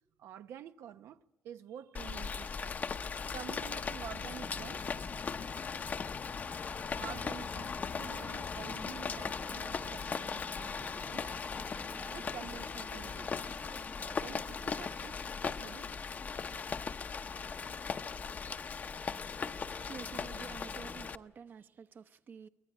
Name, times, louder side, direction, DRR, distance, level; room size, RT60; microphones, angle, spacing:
voice 1, 0.2-5.1 7.0-11.4 11.7-13.6 14.0-15.9, right 10 dB, 90° right, 0.8 m, -49 dB
Rain, 1.9-21.1, left 5 dB, 40° left, 0.8 m, -38 dB
sound 1, 7.5-15.1, right 2 dB, 15° right, 0.7 m, -54 dB
voice 2, 19.9-22.5, right 6 dB, 50° right, 0.9 m, -49 dB
24.0 x 18.0 x 9.9 m
cardioid pair, 125°, 4 cm